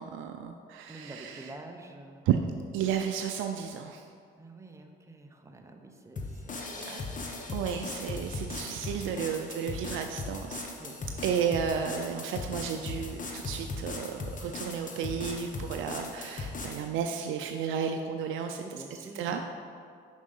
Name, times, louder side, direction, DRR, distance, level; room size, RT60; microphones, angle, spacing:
voice 1, 0.0-1.5 2.3-2.4 2.7-4.0 6.8-7.0 7.5-10.7 11.2-18.6 19.1-19.4, right 8 dB, 90° right, 5 dB, 0.4 m, -32 dB
voice 2, 0.9-2.3 4.4-6.9 7.3-7.4 9.1-9.2 10.8-11.0 18.5-19.4, right 2 dB, 15° right, 3 dB, 0.8 m, -47 dB
sound 1, 6.2-16.9, left 3 dB, 40° left, 1.0 m, -38 dB
6.3 x 5.4 x 5.4 m, 2.3 s
cardioid pair, 90°, 20 cm